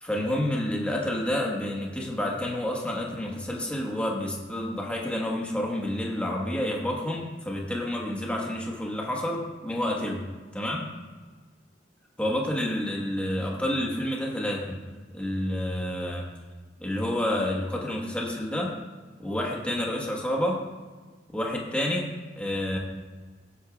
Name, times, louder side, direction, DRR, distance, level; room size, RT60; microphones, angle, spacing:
voice 1, 0.0-10.2 10.5-10.9 12.2-14.8 15.1-16.3 16.8-18.8 19.2-20.6 21.3-22.8, left 1 dB, 5° left, -2 dB, 1.4 m, -29 dB
17.0 x 8.3 x 2.4 m, 1.4 s
head